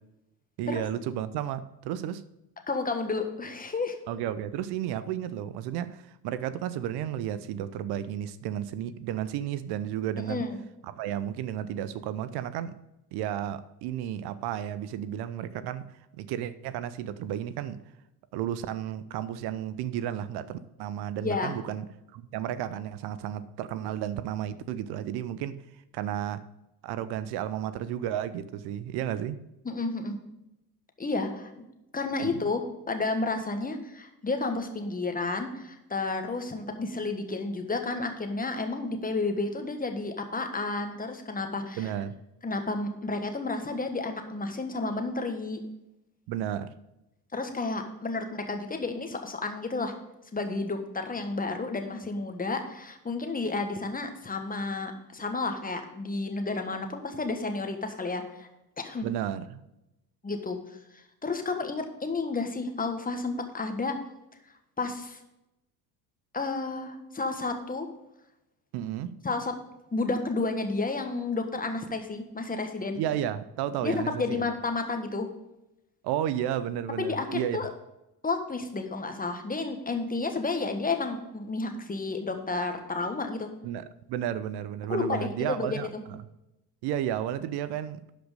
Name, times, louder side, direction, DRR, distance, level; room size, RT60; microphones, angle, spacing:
voice 1, 0.6-2.2 4.1-10.4 10.8-12.7 13.1-17.8 18.3-21.9 22.1-25.6 25.9-26.4 26.8-29.4 32.2-32.4 41.8-42.1 46.3-46.7 59.0-59.6 68.7-69.1 72.9-74.4 76.0-77.6 83.6-86.2 86.8-88.2, right 10 dB, 55° right, 14 dB, 0.7 m, -33 dB
voice 2, 2.7-4.0 10.3-10.6 21.2-21.6 29.6-30.2 31.0-31.5 31.9-41.9 42.4-45.6 47.3-49.9 50.3-58.5 58.8-59.1 60.2-64.0 64.8-65.2 66.3-67.9 69.2-69.5 69.9-73.0 73.8-75.3 77.0-77.7 78.2-83.5 84.9-86.0, left 3 dB, 15° left, 5 dB, 1.5 m, -31 dB
11.5 x 5.2 x 5.2 m, 0.92 s
hypercardioid pair, 65°, 48 cm